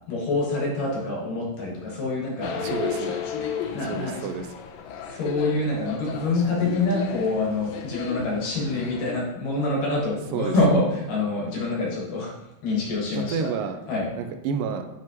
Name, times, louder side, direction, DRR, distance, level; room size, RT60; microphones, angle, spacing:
voice 1, 0.1-2.7 3.7-4.1 5.1-12.3 12.6-13.5 13.9-14.1, left 2 dB, 75° left, -4 dB, 3.2 m, -26 dB
sound 1, 2.4-9.1, left 7 dB, 90° left, 2.4 m, -34 dB
voice 2, 2.6-3.2 3.8-4.5 10.3-10.5 13.3-13.8 14.2-14.8, right 6 dB, 85° right, 7 dB, 2.3 m, -29 dB
7.1 x 6.0 x 3.0 m, 0.91 s
omnidirectional pair, 3.9 m